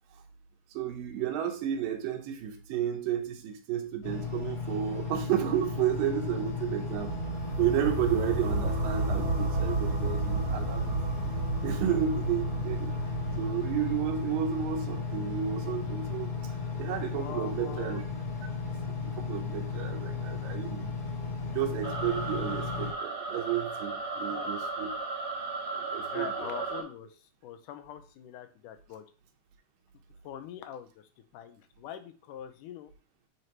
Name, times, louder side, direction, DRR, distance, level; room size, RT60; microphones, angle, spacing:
voice 1, 0.7-7.1 7.6-11.0 11.6-12.9 13.4-16.5 16.8-18.0 19.1-20.9 21.5-24.9 25.7-26.5, right 10 dB, 85° right, 3 dB, 2.6 m, -32 dB
Engine, 4.0-22.9, left 4 dB, 45° left, 2.1 m, -35 dB
sound 1, 7.0-16.9, right 2 dB, 65° right, 2.8 m, -33 dB
voice 2, 17.1-18.0 24.2-24.6 26.1-27.1 27.4-29.0 30.2-31.0 31.3-32.9, left 10 dB, 80° left, 9 dB, 2.2 m, -43 dB
sound 2, 21.8-26.8, right 3 dB, 25° right, 1.3 m, -35 dB
7.9 x 2.9 x 4.6 m, 0.36 s
omnidirectional pair, 3.9 m